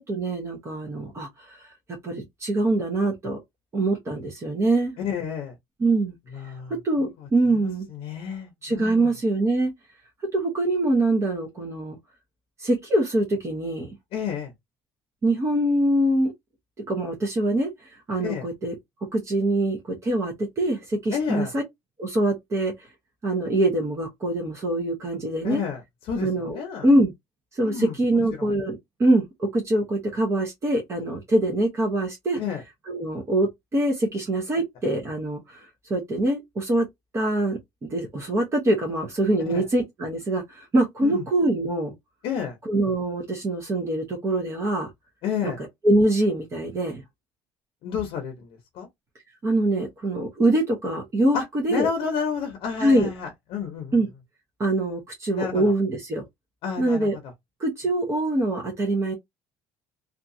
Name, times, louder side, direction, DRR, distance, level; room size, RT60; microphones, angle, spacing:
voice 1, 0.1-1.7 2.0-3.4 3.7-4.9 5.8-6.1 6.8-7.9 8.6-9.7 10.3-12.0 12.6-14.0 15.2-16.3 16.9-18.7 19.1-21.6 22.0-22.9 23.2-25.6 26.2-27.1 27.5-32.4 32.9-36.9 37.1-37.6 37.9-41.9 42.7-44.9 45.8-47.0 49.4-51.9 52.8-53.1 53.9-54.1 54.6-56.2 56.8-57.2 57.6-59.1, right 1 dB, 25° right, 0.8 m, -24 dB
voice 2, 5.0-5.5 6.3-6.7 7.6-9.1 14.1-14.5 18.2-18.5 21.1-21.5 25.4-26.9 27.6-28.5 32.3-32.6 39.5-39.7 41.0-41.2 42.2-42.6 45.2-45.6 47.8-48.9 51.3-54.0 55.3-55.7 56.6-57.2, left 7 dB, 60° left, 0.8 m, -31 dB
2.7 x 2.4 x 2.6 m
cardioid pair, 150°, 11 cm